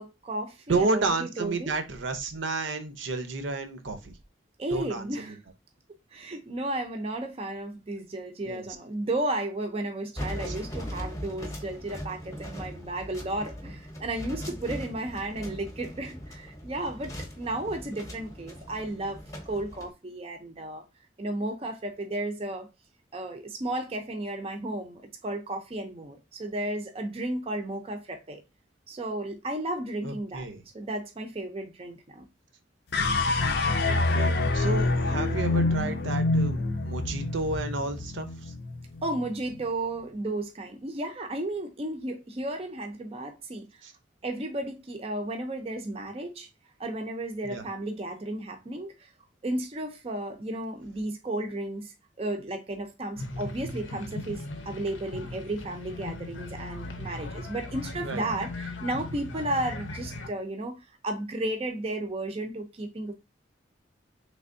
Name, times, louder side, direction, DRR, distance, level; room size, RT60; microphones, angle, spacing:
voice 1, 0.0-1.7 4.6-5.4 6.1-20.8 21.2-22.7 23.1-28.4 28.9-30.5 30.7-32.2 39.0-43.7 44.2-46.5 46.8-49.1 49.4-60.8 61.0-63.1, right 1 dB, 30° right, 0.5 m, -33 dB
voice 2, 0.7-4.1 4.7-5.4 8.4-8.7 10.5-10.6 30.0-30.6 33.8-38.5 43.8-43.9 47.4-47.6 58.0-58.3, right 3 dB, 80° right, 0.7 m, -31 dB
sound 1, 10.2-19.9, equal, 15° left, 0.7 m, -39 dB
sound 2, 32.9-39.3, left 2 dB, 60° left, 0.5 m, -26 dB
sound 3, 53.2-60.3, left 2 dB, 90° left, 0.7 m, -38 dB
3.3 x 3.3 x 2.5 m
head